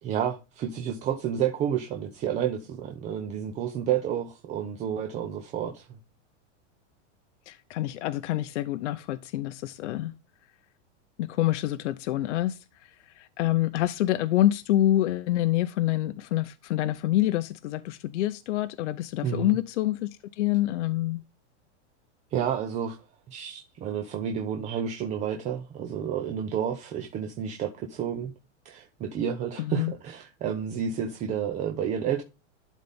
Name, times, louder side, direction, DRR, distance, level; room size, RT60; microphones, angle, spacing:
voice 1, 0.0-6.0 19.2-19.6 22.3-23.0 23.3-28.3 28.6-32.2, right 8 dB, 20° right, 0.6 m, -30 dB
voice 2, 7.5-10.1 11.2-21.2 29.6-29.9, left 14 dB, 75° left, 0.7 m, -27 dB
11.5 x 4.2 x 3.5 m
supercardioid pair, 160°, 36 cm